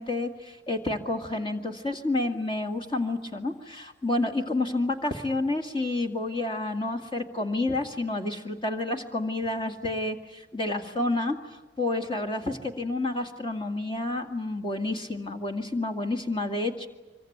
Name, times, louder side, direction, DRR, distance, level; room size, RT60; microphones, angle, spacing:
voice 1, 0.0-10.2 10.5-16.9, left 2 dB, 30° left, 4 dB, 2.1 m, -29 dB
25.5 x 23.0 x 9.4 m, 1.1 s
head